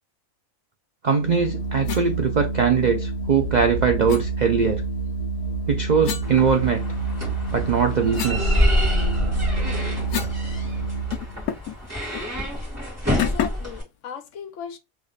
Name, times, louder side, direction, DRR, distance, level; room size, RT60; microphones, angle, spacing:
voice 1, 1.0-4.8 5.7-6.9 7.5-8.6, right 6 dB, 65° right, 0.4 m, -21 dB
Organ, 1.1-11.4, right 3 dB, 45° left, 1.9 m, -28 dB
sound 1, 1.8-2.1 4.1-4.3 6.0-7.1 7.5-10.4 10.7-10.8 11.1-11.8 12.1-12.3 13.2-13.7, left 10 dB, 90° left, 1.2 m, -31 dB
sound 2, 6.2-13.8, equal, 10° right, 2.0 m, -26 dB
voice 2, 13.1-14.8, left 7 dB, 70° left, 0.9 m, -37 dB
3.6 x 3.2 x 3.9 m
omnidirectional pair, 1.5 m